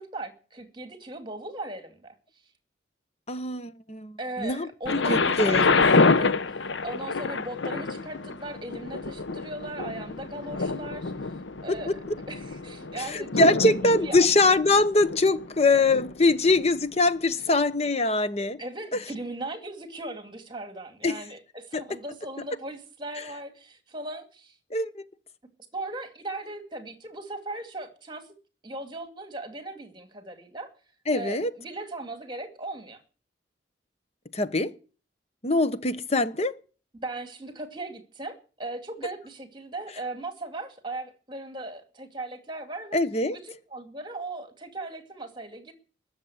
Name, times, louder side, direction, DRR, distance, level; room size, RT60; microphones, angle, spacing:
voice 1, 0.0-2.2 4.2-11.3 11.6-11.9 12.3-14.3 18.6-24.5 25.7-28.3 28.6-30.7 31.1-33.0 36.9-43.0 43.3-45.7, right 2 dB, 25° right, 2.4 m, -38 dB
voice 2, 3.3-5.7 11.7-11.9 13.0-18.6 18.9-19.0 21.0-21.2 21.7-21.8 24.7-25.1 31.1-31.5 34.3-34.7 35.4-36.5 42.9-43.4, left 2 dB, 35° left, 1.0 m, -23 dB
Thunder, 4.9-16.7 17.5-17.6, left 4 dB, 75° left, 0.8 m, -27 dB
20.5 x 7.4 x 8.1 m
head